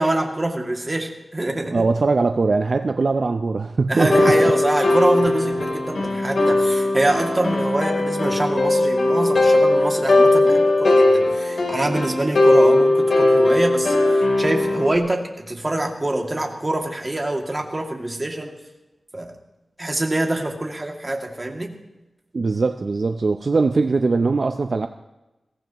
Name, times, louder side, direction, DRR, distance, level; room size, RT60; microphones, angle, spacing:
voice 1, 0.0-1.9 3.9-18.5 19.1-19.3 19.8-21.7, right 1 dB, 25° right, 1 dB, 2.4 m, -25 dB
voice 2, 1.7-4.5 22.3-24.9, right 3 dB, 55° right, 7 dB, 0.6 m, -21 dB
sound 1, 4.0-14.9, left 2 dB, 75° left, 3.6 m, -18 dB
22.5 x 17.0 x 3.1 m, 1.0 s
wide cardioid pair, 100°, 0 cm